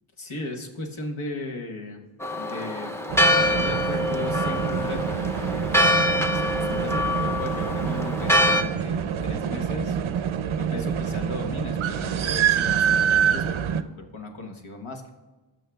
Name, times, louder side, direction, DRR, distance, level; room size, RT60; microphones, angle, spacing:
voice 1, 0.2-2.0 2.4-2.9 3.3-10.0 10.6-15.1, left 2 dB, 70° left, 2 dB, 1.2 m, -36 dB
Church bell, 2.2-8.6, left 1 dB, 5° left, 0.5 m, -24 dB
sound 1, 3.1-13.8, right 8 dB, 75° right, 0.6 m, -26 dB
16.0 x 6.4 x 2.3 m, 1.2 s
wide cardioid pair, 70°, 50 cm